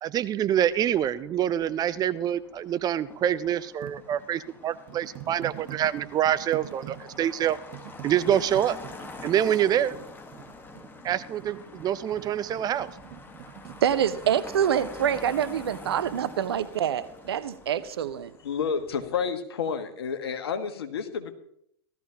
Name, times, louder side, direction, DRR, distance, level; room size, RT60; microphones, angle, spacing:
voice 1, 0.0-7.6 8.0-8.8 9.2-9.9 11.0-12.9, right 10 dB, 30° right, 14 dB, 0.6 m, -26 dB
Motor vehicle (road), 0.5-19.3, left 3 dB, 15° left, 1.5 m, -46 dB
sound 1, 3.8-14.6, right 13 dB, 50° right, 1.1 m, -45 dB
voice 2, 13.8-18.3, right 9 dB, 70° right, 15 dB, 0.8 m, -26 dB
voice 3, 18.4-21.3, left 6 dB, 70° left, 8 dB, 1.4 m, -30 dB
17.0 x 13.0 x 2.9 m, 0.71 s
figure-of-eight pair, 95°, 13 cm